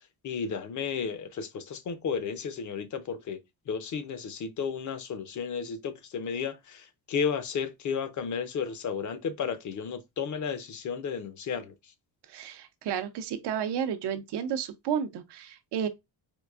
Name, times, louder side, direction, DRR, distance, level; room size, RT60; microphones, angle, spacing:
voice 1, 0.2-3.4 3.7-11.7, left 6 dB, 50° left, 0.5 m, -33 dB
voice 2, 12.3-15.9, right 8 dB, 85° right, 0.6 m, -32 dB
4.5 x 2.5 x 2.3 m
wide cardioid pair, 165°, 40 cm